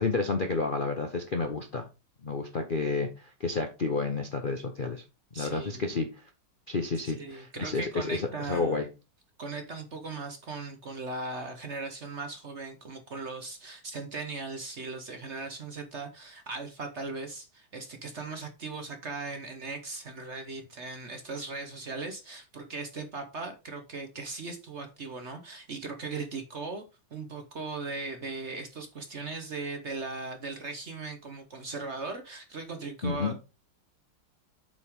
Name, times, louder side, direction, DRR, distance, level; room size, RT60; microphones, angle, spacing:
voice 1, 0.0-1.8 2.2-5.0 5.4-6.2 6.7-8.9 33.0-33.3, left 4 dB, 85° left, 0.4 m, -30 dB
voice 2, 5.3-5.8 7.0-8.8 9.4-26.8 27.1-33.4, right 3 dB, 50° right, 0.9 m, -38 dB
7.8 x 5.2 x 3.6 m
omnidirectional pair, 2.3 m